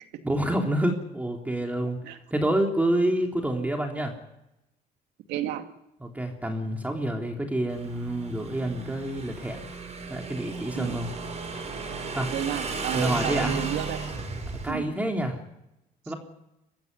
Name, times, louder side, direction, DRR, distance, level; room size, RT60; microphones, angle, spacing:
voice 1, 0.2-2.0 2.3-4.1 6.0-9.6 10.1-11.1 12.1-12.3 12.9-13.5 14.6-15.4 16.1-16.2, right 1 dB, 10° right, 2 dB, 3.3 m, -28 dB
voice 2, 5.3-5.6 10.8-11.0 12.3-14.0 14.7-14.9, right 11 dB, 85° right, 6 dB, 2.3 m, -31 dB
Motorcycle / Engine, 7.7-14.7, right 4 dB, 40° right, 6.1 m, -35 dB
23.5 x 15.0 x 9.7 m, 0.89 s
cardioid pair, 110°, 17 cm